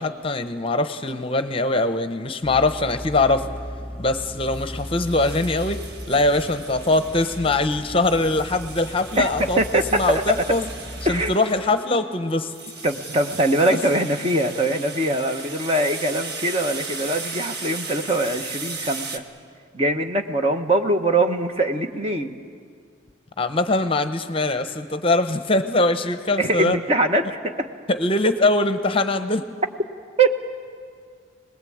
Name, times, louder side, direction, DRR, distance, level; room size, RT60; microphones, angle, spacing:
voice 1, 0.0-3.5 4.0-10.7 11.1-12.5 23.4-26.8 27.9-29.4, left 2 dB, 25° left, 9 dB, 0.8 m, -22 dB
sound 1, 2.4-11.3, equal, 5° left, 2.8 m, -37 dB
sound 2, 4.4-19.2, right 4 dB, 55° right, 1.5 m, -37 dB
voice 2, 9.6-10.4 11.0-11.3 12.8-19.2 19.7-22.4 26.4-27.7 30.2-30.4, right 1 dB, 30° right, 6 dB, 1.1 m, -22 dB
25.5 x 20.0 x 8.7 m, 2.1 s
head